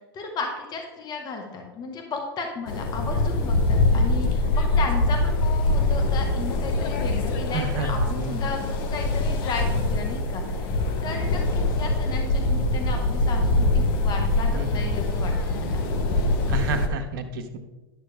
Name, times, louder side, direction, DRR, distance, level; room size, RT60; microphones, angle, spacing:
voice 1, 0.1-8.6 8.9-10.7 11.0-15.8, left 4 dB, 35° left, 3 dB, 1.6 m, -34 dB
sound 1, 2.7-16.9, left 2 dB, 60° left, 1.2 m, -23 dB
voice 2, 7.5-8.5 14.5-14.9 16.5-17.6, right 4 dB, 65° right, 6 dB, 1.1 m, -31 dB
11.0 x 6.4 x 3.4 m, 1.1 s
hypercardioid pair, 105°, 13 cm